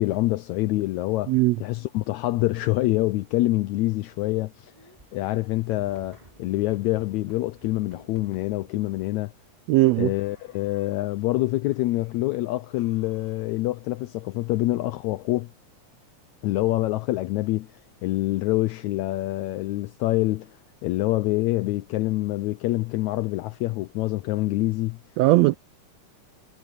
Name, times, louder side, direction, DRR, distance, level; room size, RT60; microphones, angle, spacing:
voice 1, 0.0-1.3 1.6-4.7 5.1-9.3 10.0-15.5 16.4-17.7 18.0-20.5 20.8-25.0, left 17 dB, 80° left, 1.8 m, -26 dB
sound 1, 4.7-9.1 9.9-11.2 11.7-12.3 12.7-14.6, right 1 dB, 10° right, 6.4 m, -56 dB
voice 2, 9.7-10.1 25.2-25.6, right 18 dB, 85° right, 1.5 m, -18 dB
omnidirectional pair, 3.5 m